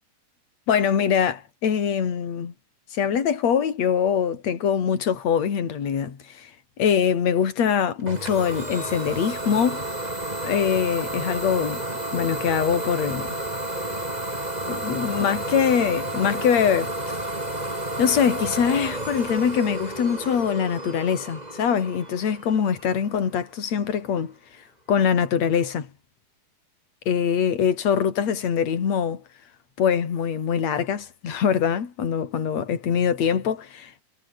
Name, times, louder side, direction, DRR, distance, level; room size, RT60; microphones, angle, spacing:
voice 1, 0.7-2.5 2.9-6.5 6.8-9.8 10.4-11.8 12.1-13.4 14.7-17.2 18.0-24.4 24.9-25.9 27.1-29.2 29.8-34.0, left 7 dB, 55° left, 4.0 m, -23 dB
Idling / Domestic sounds home sounds, 8.1-23.6, right 1 dB, 10° right, 4.5 m, -31 dB
omnidirectional pair, 4.0 m